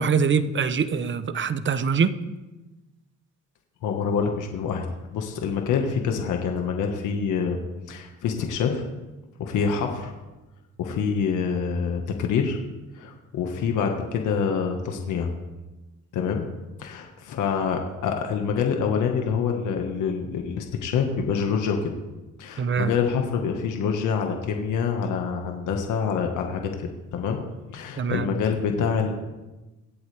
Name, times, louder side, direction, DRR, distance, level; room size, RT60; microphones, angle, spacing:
voice 1, 0.0-2.2 22.6-22.9 28.0-28.3, right 6 dB, 40° right, 12 dB, 0.9 m, -23 dB
voice 2, 3.8-4.9 5.1-7.6 7.9-8.9 9.4-10.1 10.8-12.6 12.9-15.3 16.1-16.4 16.8-21.9 22.4-27.4 27.7-29.1, left 6 dB, 85° left, 3 dB, 1.6 m, -26 dB
24.5 x 8.3 x 3.5 m, 1.1 s
cardioid pair, 90°, 30 cm